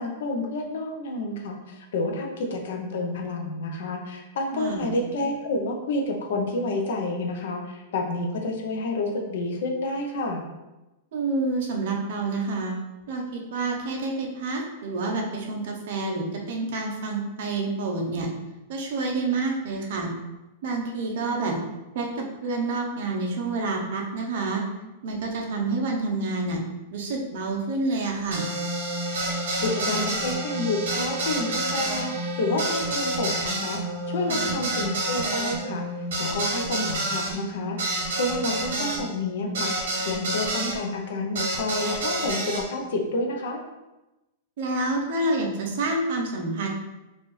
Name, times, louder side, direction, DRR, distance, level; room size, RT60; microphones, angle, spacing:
voice 1, 0.0-10.4 29.6-33.8 34.1-35.8 36.2-37.8 38.1-39.7 40.0-43.6, left 2 dB, 70° left, 2 dB, 0.7 m, -29 dB
voice 2, 4.5-4.9 11.1-18.3 18.7-20.1 20.6-21.6 21.9-24.6 25.0-26.6 26.9-28.5 34.3-34.6 44.6-46.7, right 3 dB, 60° right, 0 dB, 0.8 m, -28 dB
sound 1, 28.3-40.8 41.4-42.6, right 2 dB, 85° right, 1.0 m, -29 dB
4.1 x 2.5 x 3.2 m, 1.0 s
supercardioid pair, 160°, 0 cm